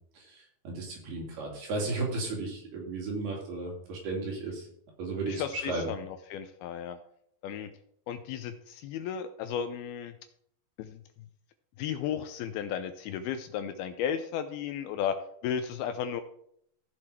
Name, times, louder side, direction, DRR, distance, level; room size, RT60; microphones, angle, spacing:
voice 1, 0.2-4.7 5.0-5.9, right 3 dB, 65° right, -1 dB, 4.7 m, -34 dB
voice 2, 5.3-7.0 7.4-7.7 8.1-10.1 10.8-11.0 11.8-15.2 15.4-16.2, left 8 dB, 80° left, 9 dB, 2.3 m, -34 dB
15.5 x 6.6 x 4.3 m, 0.70 s
omnidirectional pair, 4.8 m